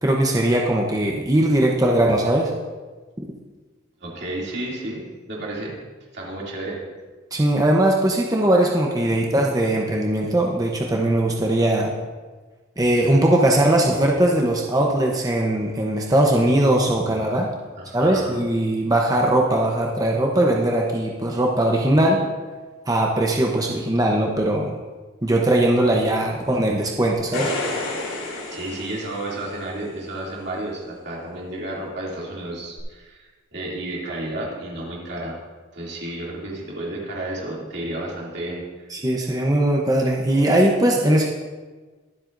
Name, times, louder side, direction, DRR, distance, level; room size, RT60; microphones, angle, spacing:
voice 1, 0.0-2.5 7.3-11.9 12.8-17.5 17.9-22.2 22.9-24.8 25.2-27.5 38.9-41.3, right 1 dB, 15° right, -1 dB, 0.8 m, -20 dB
voice 2, 4.0-5.8 6.1-6.8 17.8-18.5 28.5-33.3 33.5-35.4 35.7-38.9, right 1 dB, 55° right, -4 dB, 2.7 m, -32 dB
sound 1, 27.1-29.7 32.8-32.9, left 2 dB, 85° left, 3.6 m, -30 dB
23.0 x 7.7 x 2.6 m, 1.3 s
head